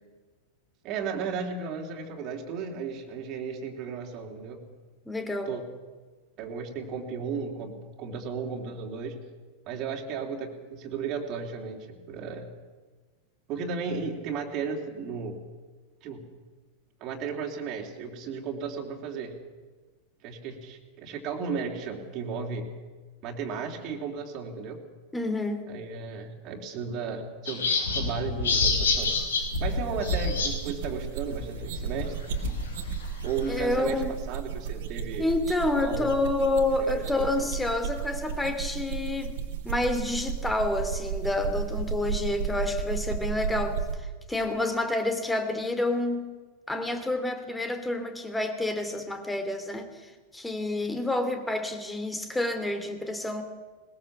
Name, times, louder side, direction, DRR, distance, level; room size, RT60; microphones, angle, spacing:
voice 1, 0.8-4.6 5.5-5.6 6.4-9.2 9.7-12.5 13.5-15.4 16.0-16.2 17.0-19.4 20.2-22.7 23.2-24.8 25.7-29.2 29.6-32.1 33.2-34.0 34.3-35.3 35.8-36.1 36.8-37.3, right 5 dB, 35° right, 1 dB, 3.5 m, -34 dB
voice 2, 5.1-5.6 25.1-25.8 33.5-34.1 35.2-39.4 39.6-46.2 46.7-53.4, left 2 dB, 5° left, 7 dB, 2.8 m, -29 dB
sound 1, 27.5-30.5 30.9-31.0 31.3-33.7, left 4 dB, 65° left, 4.6 m, -28 dB
sound 2, 28.7-44.0, right 8 dB, 55° right, 2.3 m, -34 dB
21.0 x 20.5 x 7.2 m, 1.3 s
figure-of-eight pair, 90°, 0 cm